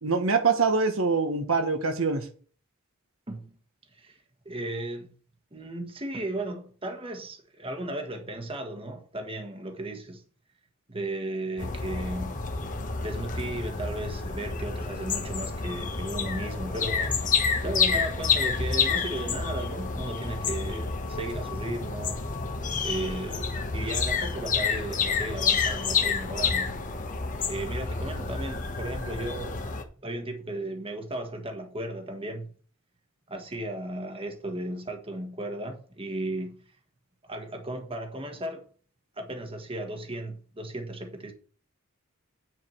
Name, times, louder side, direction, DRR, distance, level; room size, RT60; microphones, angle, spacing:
voice 1, 0.0-2.3, right 4 dB, 75° right, 1.4 m, -24 dB
voice 2, 4.4-5.1 5.5-10.2 10.9-12.4 13.0-17.2 17.6-22.2 22.8-26.8 27.5-29.6 30.0-32.5 33.3-36.6 37.2-38.7 39.2-41.3, right 1 dB, 25° right, 1.5 m, -35 dB
sound 1, 11.6-29.8, left 5 dB, 40° left, 1.2 m, -29 dB
9.5 x 5.0 x 6.0 m
head